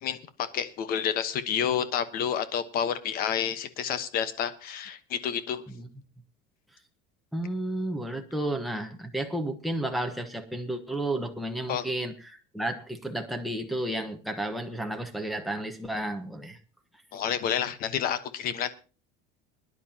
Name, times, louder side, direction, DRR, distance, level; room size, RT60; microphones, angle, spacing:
voice 1, 0.0-5.6 11.7-11.9 17.1-18.7, left 8 dB, 45° left, 12 dB, 1.2 m, -29 dB
voice 2, 7.3-16.6, right 1 dB, ahead, 3 dB, 1.2 m, -32 dB
22.0 x 11.0 x 2.9 m, 0.34 s
cardioid pair, 155°, 21 cm